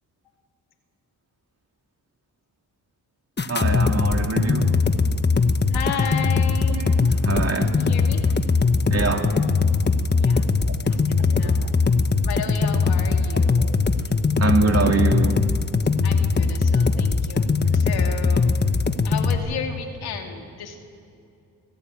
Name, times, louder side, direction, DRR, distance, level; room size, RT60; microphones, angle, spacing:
sound 1, 3.4-19.4, left 4 dB, 30° left, 1.4 m, -20 dB
voice 1, 3.5-4.7 6.7-7.8 8.9-9.4 10.7-10.8 11.2-11.7 13.6-13.7 14.4-15.5, right 4 dB, 40° right, 3 dB, 3.2 m, -25 dB
voice 2, 5.7-6.8 7.7-8.2 10.1-10.5 10.8-11.7 12.2-13.7 16.0-18.6 19.0-20.9, left 7 dB, 80° left, 3 dB, 2.8 m, -33 dB
22.0 x 15.0 x 9.3 m, 2.5 s
supercardioid pair, 55°, 37 cm